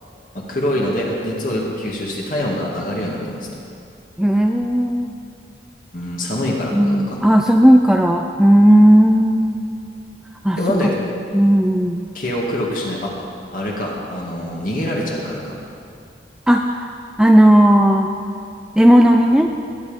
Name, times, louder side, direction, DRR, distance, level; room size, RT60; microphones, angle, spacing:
voice 1, 0.3-3.5 5.9-7.2 10.6-10.9 12.1-13.1 13.5-15.6, left 1 dB, 50° left, -3 dB, 2.3 m, -24 dB
voice 2, 4.2-5.1 6.7-9.6 10.4-10.9 11.3-12.1 16.5-18.1 18.8-19.5, equal, 5° right, 3 dB, 0.4 m, -14 dB
21.0 x 9.5 x 5.3 m, 2.4 s
head